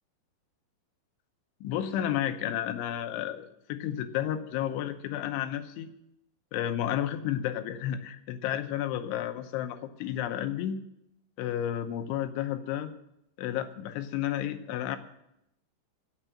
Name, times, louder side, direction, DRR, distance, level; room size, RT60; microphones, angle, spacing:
voice 1, 1.6-5.9 6.5-10.8 11.4-12.9 13.4-15.0, left 11 dB, 85° left, 9 dB, 3.2 m, -32 dB
16.0 x 6.8 x 8.8 m, 0.82 s
omnidirectional pair, 5.6 m